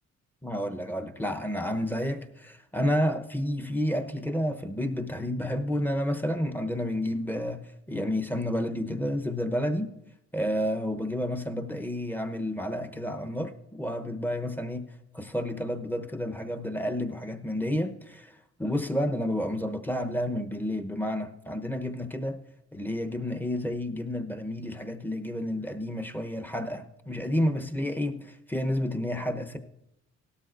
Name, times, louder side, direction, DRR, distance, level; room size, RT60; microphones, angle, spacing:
voice 1, 0.4-7.6 7.9-9.9 10.3-14.9 15.1-22.4 22.7-29.6, left 1 dB, 5° left, 0.9 m, -30 dB
17.5 x 12.5 x 2.6 m
cardioid pair, 90°, 30 cm